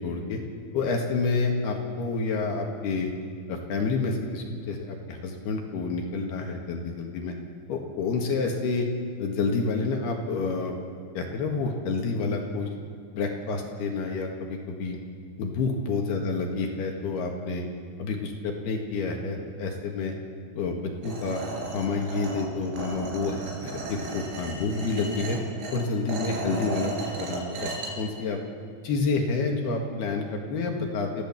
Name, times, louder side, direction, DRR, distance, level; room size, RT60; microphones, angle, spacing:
voice 1, 0.0-0.4 0.7-3.1 3.5-7.3 7.7-8.9 9.2-10.7 11.2-12.7 13.1-15.0 15.4-17.7 18.0-20.1 20.5-20.8 21.0-21.4 21.7-25.4 25.7-28.4 28.8-31.2, left 4 dB, 65° left, 2 dB, 3.5 m, -29 dB
sound 1, 21.0-27.9, right 2 dB, 80° right, 6.1 m, -35 dB
28.5 x 15.5 x 7.4 m, 2.1 s
omnidirectional pair, 5.6 m